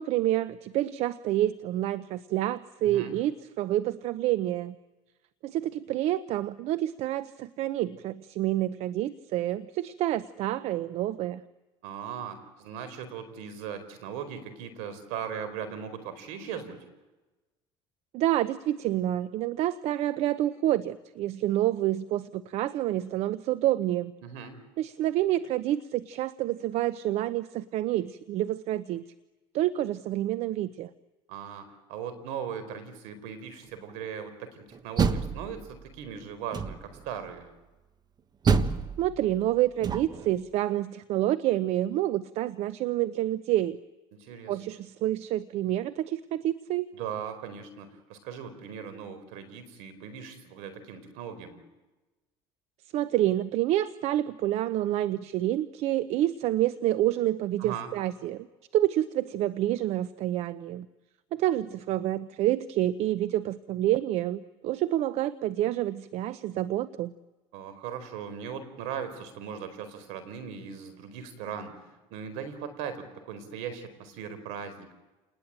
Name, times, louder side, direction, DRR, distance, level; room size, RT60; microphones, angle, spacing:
voice 1, 0.0-4.7 5.4-11.4 18.1-24.1 24.8-29.0 29.5-30.9 39.0-43.8 44.5-46.9 52.9-58.5 58.7-60.9 61.3-67.1, right 13 dB, 65° right, 15 dB, 0.8 m, -28 dB
voice 2, 2.8-3.1 11.8-16.8 24.2-24.6 31.3-37.5 44.2-44.6 46.9-51.6 57.6-57.9 67.5-74.9, right 7 dB, 85° right, 11 dB, 4.6 m, -39 dB
Door, 34.7-36.0 36.5-37.1 38.4-40.3, right 5 dB, 35° right, 1.4 m, -28 dB
29.0 x 20.0 x 9.0 m, 1.1 s
supercardioid pair, 105°, 12 cm